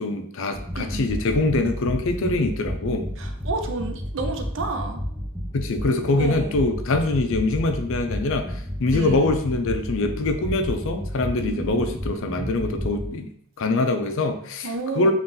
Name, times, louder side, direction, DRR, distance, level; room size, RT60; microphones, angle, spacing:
voice 1, 0.0-3.1 5.5-13.3 13.6-15.1, left 2 dB, 60° left, 6 dB, 0.5 m, -24 dB
sound 1, 0.5-13.1, equal, 5° right, 0.8 m, -31 dB
voice 2, 0.7-1.1 3.2-5.0 6.2-6.6 8.9-9.3 11.4-11.9 14.6-15.1, right 3 dB, 55° right, 5 dB, 0.5 m, -31 dB
4.0 x 2.5 x 3.8 m, 0.64 s
head